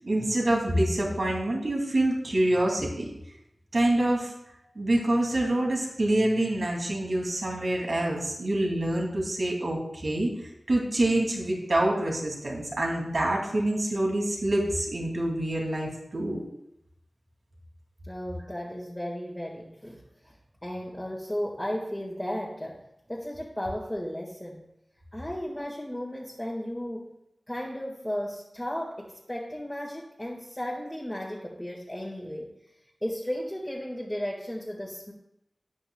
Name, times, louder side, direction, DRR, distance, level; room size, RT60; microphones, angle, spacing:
voice 1, 0.0-3.1 3.7-4.3 4.7-10.3 10.7-16.4, right 1 dB, 65° right, -1 dB, 2.8 m, -26 dB
voice 2, 18.1-20.3 20.6-22.8 23.1-24.7 25.1-27.1 27.5-32.5 33.0-35.1, equal, 15° left, -4 dB, 1.9 m, -35 dB
12.5 x 8.9 x 2.4 m, 0.81 s
cardioid pair, 45°, 0 cm